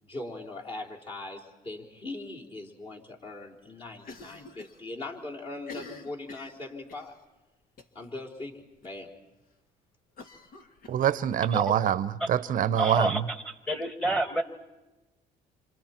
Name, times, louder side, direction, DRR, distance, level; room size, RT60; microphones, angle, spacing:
voice 1, 0.0-7.2 7.9-9.1, left 2 dB, 35° left, 4.0 m, -40 dB
Cough, 4.0-4.8 5.1-5.2 5.6-7.1 7.8-8.1 8.4-8.5 8.8-8.9 10.2-11.4, left 3 dB, 55° left, 1.8 m, -47 dB
voice 2, 10.9-13.3, right 10 dB, 55° right, 0.8 m, -25 dB
voice 3, 12.8-13.4 13.7-14.4, right 1 dB, 5° left, 1.8 m, -28 dB
28.0 x 26.5 x 4.5 m
cardioid pair, 110°, 17 cm